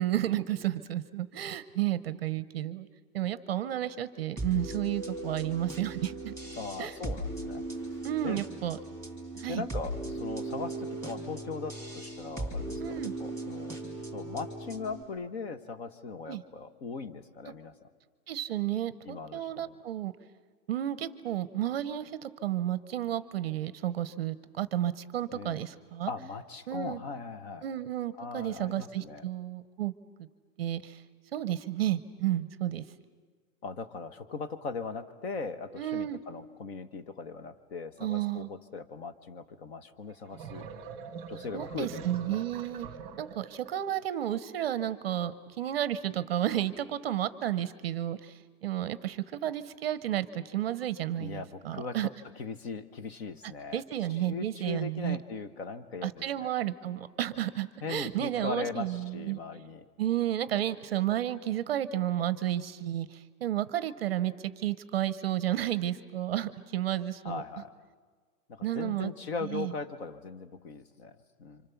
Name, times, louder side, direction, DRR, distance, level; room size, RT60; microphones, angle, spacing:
voice 1, 0.0-2.9 3.1-6.3 6.8-6.9 8.0-8.8 9.4-9.6 12.8-13.1 16.3-16.4 18.3-20.1 20.7-26.1 26.7-27.0 27.6-29.9 30.2-30.3 30.6-31.0 31.3-32.8 35.8-36.2 38.0-38.5 41.5-42.9 43.2-52.1 53.7-55.2 56.0-59.7 60.0-67.4 68.6-69.1 69.4-69.7, right 12 dB, 40° right, 15 dB, 0.7 m, -32 dB
sound 1, 4.4-15.0, right 1 dB, 5° left, 3.1 m, -38 dB
voice 2, 6.6-8.0 8.2-8.4 9.5-13.8 14.1-17.7 19.0-19.8 25.3-25.6 26.1-27.6 28.2-29.2 33.6-40.7 41.3-42.4 51.2-52.1 52.4-53.8 54.1-56.5 57.8-59.9 67.2-67.7 68.5-71.6, left 4 dB, 40° left, 11 dB, 1.3 m, -39 dB
sound 2, 40.1-44.0, right 6 dB, 10° right, 1.3 m, -44 dB
29.5 x 25.5 x 7.1 m, 1.5 s
hypercardioid pair, 170°, 46 cm